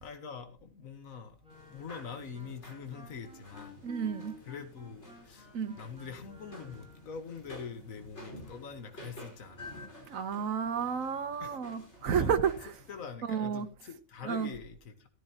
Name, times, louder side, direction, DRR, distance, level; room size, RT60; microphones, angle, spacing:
voice 1, 0.0-1.4 1.7-3.8 4.4-5.5 5.7-9.9 11.4-11.6 12.0-12.3 12.9-15.1, left 6 dB, 75° left, 1.8 m, -44 dB
Wind instrument woodwind instrument, 1.4-7.2, left 1 dB, 5° right, 4.4 m, -54 dB
sound 1, 1.5-13.1, left 1 dB, 55° left, 5.2 m, -51 dB
voice 2, 3.8-4.3 5.5-5.7 10.1-12.5 13.2-13.7 14.2-14.5, right 7 dB, 75° right, 1.4 m, -31 dB
13.5 x 13.5 x 2.9 m
omnidirectional pair, 1.4 m